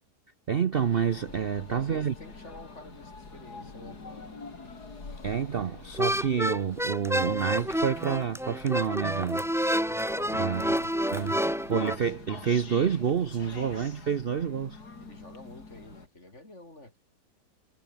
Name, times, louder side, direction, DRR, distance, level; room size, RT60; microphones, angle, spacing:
voice 1, 0.5-2.1 5.2-9.4 10.4-10.7 11.1-11.3 11.7-14.8, right 7 dB, 50° right, 0.7 m, -28 dB
sound 1, 0.7-16.1, left 3 dB, 65° left, 4.2 m, -46 dB
voice 2, 1.6-4.4 10.1-11.6 15.0-17.0, left 1 dB, 40° left, 8.4 m, -48 dB
sound 2, 5.9-12.0, equal, ahead, 1.1 m, -29 dB
omnidirectional pair, 1.8 m